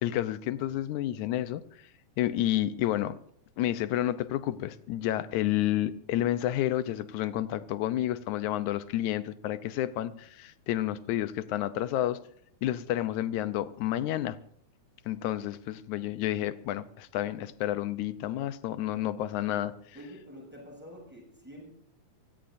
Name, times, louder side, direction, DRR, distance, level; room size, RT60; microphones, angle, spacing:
voice 1, 0.0-1.9 2.2-3.2 3.6-12.2 12.6-14.4 15.1-19.7, left 13 dB, 85° left, 13 dB, 2.1 m, -30 dB
voice 2, 19.9-21.7, equal, 5° right, -1 dB, 7.7 m, -47 dB
27.5 x 16.5 x 2.6 m, 0.64 s
omnidirectional pair, 3.3 m